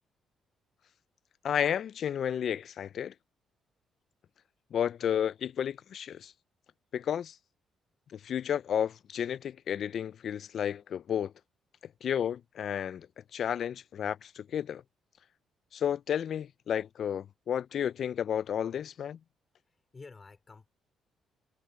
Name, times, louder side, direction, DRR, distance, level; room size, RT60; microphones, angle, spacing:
voice 1, 1.4-3.1 4.7-6.3 6.9-7.4 8.1-11.3 12.0-13.1 13.3-14.8 15.7-19.2, left 9 dB, 60° left, 0.4 m, -32 dB
voice 2, 19.6-20.7, left 4 dB, 30° left, 4.0 m, -51 dB
cardioid pair, 90°, 0 cm